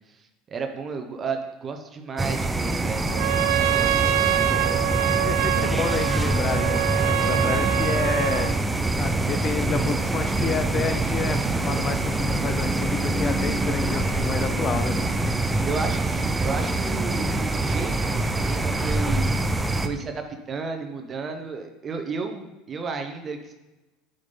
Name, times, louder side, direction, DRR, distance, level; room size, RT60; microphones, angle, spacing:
voice 1, 0.0-3.4 3.6-4.0 4.3-4.7 5.6-5.7 15.6-19.4 19.8-23.5, right 4 dB, 30° right, 5 dB, 0.9 m, -33 dB
sound 1, 2.2-19.9, right 2 dB, 10° right, 0.5 m, -25 dB
Trumpet, 3.1-8.6, right 13 dB, 70° right, 0.3 m, -25 dB
voice 2, 5.2-8.5 9.0-15.0, left 6 dB, 35° left, 9 dB, 0.7 m, -30 dB
8.1 x 5.1 x 3.9 m, 1.1 s
supercardioid pair, 105°, 0 cm